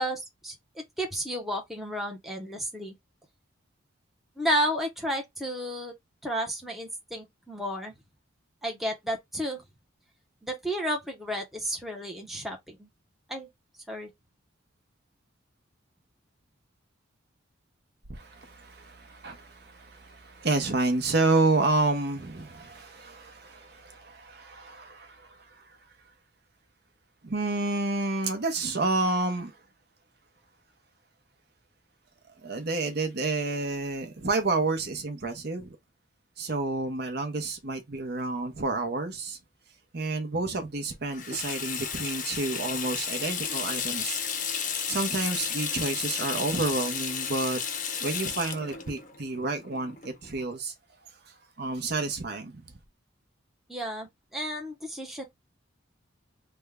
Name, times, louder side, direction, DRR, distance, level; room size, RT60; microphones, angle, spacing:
voice 1, 0.0-2.9 4.4-6.0 6.2-7.9 8.6-9.6 10.4-12.9 13.3-13.5 13.9-14.1 53.7-55.2, equal, ahead, 0.6 m, -32 dB
voice 2, 18.1-25.8 27.2-29.6 32.4-35.8 36.4-39.4 39.9-44.2 44.9-47.6 48.0-50.7 51.2-52.7, right 3 dB, 55° right, 0.8 m, -30 dB
Water tap faucet / Sink (filling or washing), 41.1-50.4, left 7 dB, 40° left, 0.6 m, -33 dB
3.5 x 2.1 x 3.4 m
head